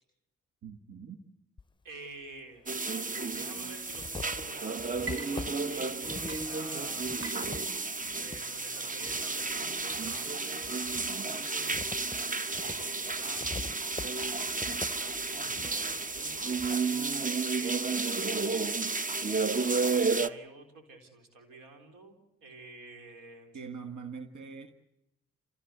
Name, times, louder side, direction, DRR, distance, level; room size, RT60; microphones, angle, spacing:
voice 1, 0.6-1.2 8.0-8.1 23.5-24.7, right 6 dB, 65° right, 8 dB, 1.7 m, -43 dB
sound 1, 1.6-1.7 2.7-2.8 3.3-8.5 9.0-10.2 10.6-16.8, left 4 dB, 15° left, 0.8 m, -45 dB
voice 2, 1.8-2.7 3.3-7.1 8.2-10.8 11.2-11.8 12.6-13.6 14.8-16.7 17.4-18.4 20.1-23.6, right 3 dB, 85° right, 5 dB, 3.8 m, -49 dB
sound 2, 2.7-20.3, right 4 dB, 25° right, 0.9 m, -32 dB
Water / Liquid, 5.0-6.0 6.3-14.5, right 3 dB, 40° right, 3.8 m, -49 dB
27.5 x 16.5 x 8.2 m, 0.89 s
supercardioid pair, 50°, 32 cm